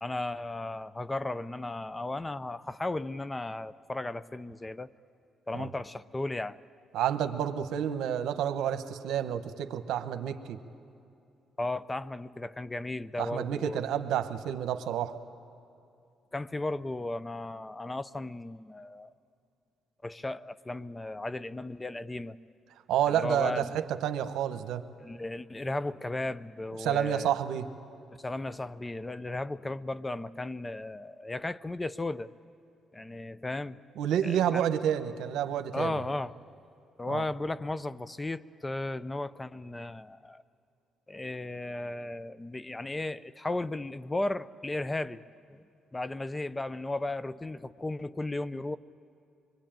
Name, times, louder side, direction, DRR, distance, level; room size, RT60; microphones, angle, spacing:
voice 1, 0.0-4.9 5.5-6.6 11.6-13.8 16.3-19.1 20.0-22.4 23.1-23.7 25.0-27.3 28.2-32.3 32.9-33.8 34.2-34.6 35.7-36.3 37.0-40.4 41.1-45.2 45.5-45.7 45.9-48.8, left 2 dB, 15° left, 16 dB, 0.6 m, -35 dB
voice 2, 6.9-10.6 13.2-15.2 22.9-24.8 26.8-27.7 34.0-36.0 37.1-37.2, right 10 dB, 85° right, 9 dB, 1.1 m, -29 dB
25.5 x 22.5 x 9.0 m, 2.6 s
cardioid pair, 90°, 0 cm